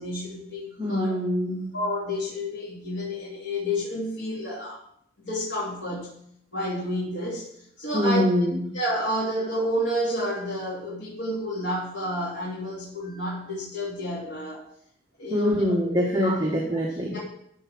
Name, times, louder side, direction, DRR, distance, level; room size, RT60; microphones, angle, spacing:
voice 1, 0.0-1.2 1.7-4.8 5.2-6.1 6.5-7.5 7.8-8.2 8.7-14.6 15.2-16.4 16.7-16.8 17.1-17.2, equal, 90° left, -7 dB, 3.1 m, -30 dB
voice 2, 0.8-1.7 7.9-8.6 15.3-17.1, equal, 20° right, -2 dB, 1.5 m, -24 dB
13.5 x 4.8 x 6.1 m, 0.69 s
head